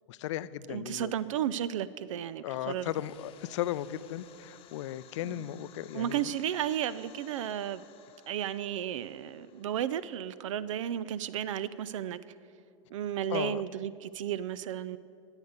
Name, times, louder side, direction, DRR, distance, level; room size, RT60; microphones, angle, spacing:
voice 1, 0.1-1.1 2.4-6.3 13.3-13.6, left 13 dB, 70° left, 17 dB, 0.5 m, -36 dB
voice 2, 0.7-2.9 5.2-5.4 5.9-7.8 8.3-12.2 12.9-15.0, right 10 dB, 80° right, 16 dB, 0.4 m, -33 dB
sound 1, 2.6-11.1, left 10 dB, 35° left, 0.9 m, -58 dB
13.0 x 8.1 x 6.7 m, 2.6 s
hypercardioid pair, 125°, 16 cm